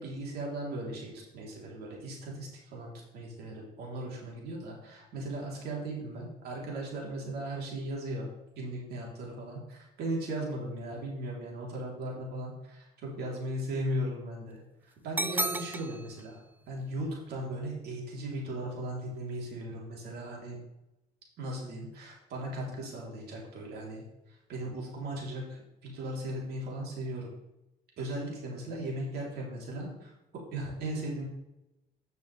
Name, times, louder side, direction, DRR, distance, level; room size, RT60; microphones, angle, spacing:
voice 1, 0.0-8.3 8.6-16.4 16.7-20.6 21.4-24.0 24.5-27.3 28.0-30.1 30.5-31.2, right 1 dB, 70° right, -2 dB, 3.1 m, -37 dB
sound 1, 15.2-16.2, right 2 dB, 10° right, 0.4 m, -32 dB
9.8 x 6.8 x 3.2 m, 0.93 s
cardioid pair, 110°, 17 cm